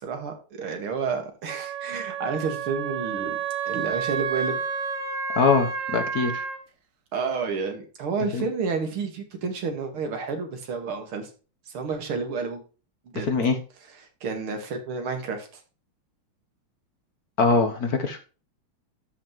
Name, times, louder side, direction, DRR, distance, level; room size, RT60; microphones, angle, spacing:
voice 1, 0.0-3.4 3.7-4.6 7.1-11.3 11.7-12.6 13.1-13.3 14.2-15.6, right 5 dB, 80° right, 5 dB, 2.7 m, -30 dB
Wind instrument woodwind instrument, 1.5-6.6, right 6 dB, 50° right, 1.1 m, -30 dB
voice 2, 5.3-6.4 8.3-8.4 13.1-13.6 17.4-18.2, left 4 dB, 55° left, 6 dB, 1.3 m, -22 dB
13.0 x 5.7 x 3.0 m, 0.35 s
omnidirectional pair, 2.3 m